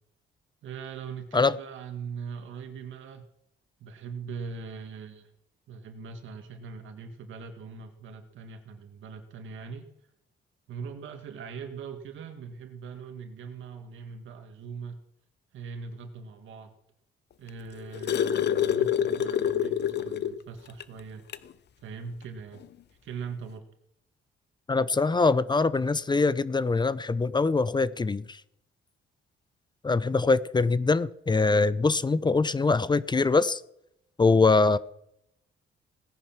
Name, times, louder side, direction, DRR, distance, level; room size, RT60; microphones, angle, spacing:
voice 1, 0.6-3.3 3.8-5.3 5.7-9.9 10.7-15.0 15.5-16.8 17.4-21.2 21.8-22.6 23.0-23.6, right 5 dB, 75° right, 2.0 m, -41 dB
sound 1, 17.5-20.4 20.8-20.9 21.3-21.5 22.6-22.7, left 9 dB, 60° left, 0.9 m, -26 dB
voice 2, 24.7-28.4 29.8-33.6 34.2-34.8, left 3 dB, 20° left, 0.7 m, -23 dB
17.5 x 10.5 x 6.0 m
cardioid pair, 90°, 20 cm